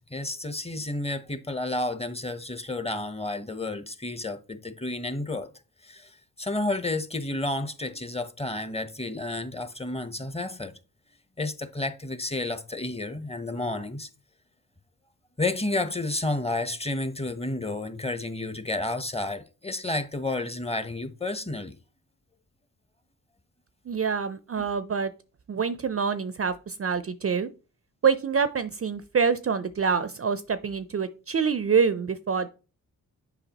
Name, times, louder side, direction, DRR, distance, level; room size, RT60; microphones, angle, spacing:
voice 1, 0.0-5.5 5.8-10.7 11.4-14.1 15.4-21.8, left 2 dB, 15° left, 0.9 m, -31 dB
voice 2, 23.9-25.1 25.5-27.5 28.0-32.5, right 6 dB, 35° right, 0.5 m, -26 dB
7.0 x 4.9 x 2.9 m
supercardioid pair, 45°, 40 cm